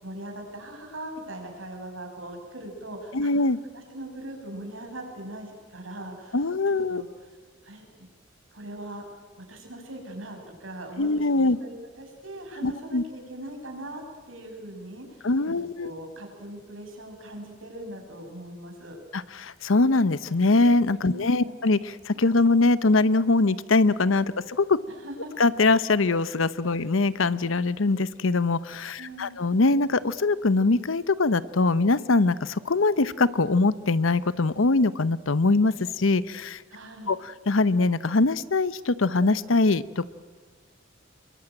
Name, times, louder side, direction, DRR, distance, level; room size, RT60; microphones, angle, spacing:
voice 1, 0.0-3.3 3.7-7.0 7.6-7.8 8.5-9.1 9.5-19.0 21.0-21.5 24.9-25.3 29.0-29.4 36.7-37.2, right 1 dB, 80° right, 3 dB, 6.3 m, -40 dB
voice 2, 3.1-3.6 6.3-7.0 11.0-11.6 12.6-13.0 15.2-15.9 19.1-24.8 25.4-36.6 37.1-37.2 37.5-40.0, left 3 dB, 80° left, 16 dB, 0.9 m, -22 dB
28.0 x 23.0 x 8.9 m, 1.4 s
head